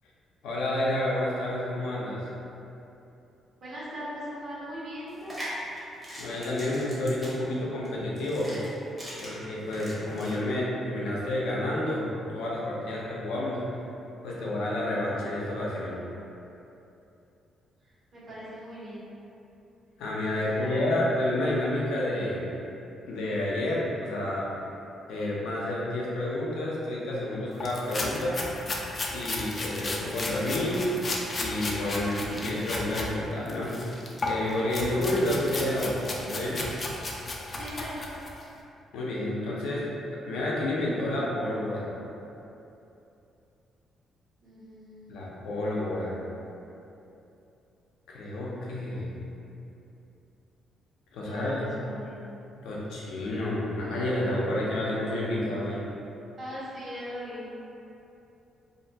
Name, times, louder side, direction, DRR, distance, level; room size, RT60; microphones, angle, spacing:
voice 1, 0.4-2.2 6.2-8.6 9.2-13.6 14.2-16.0 20.0-22.5 23.1-24.5 25.1-28.4 29.1-30.8 31.4-33.7 34.2-36.7 38.9-39.9 40.2-41.9 45.1-46.2 48.1-49.1 51.1-51.6 52.6-55.8, left 1 dB, 90° left, -5 dB, 0.5 m, -30 dB
voice 2, 3.6-5.3 18.1-19.0 20.3-20.8 37.5-38.0 44.4-45.3 51.2-52.2 56.4-57.5, equal, 55° right, -10 dB, 1.1 m, -40 dB
sound 1, 5.1-10.4, equal, 20° right, 0.8 m, -41 dB
sound 2, 27.6-33.1 33.5-38.4, left 2 dB, 35° left, 0.3 m, -34 dB
2.5 x 2.1 x 2.7 m, 2.8 s
cardioid pair, 90°, 0 cm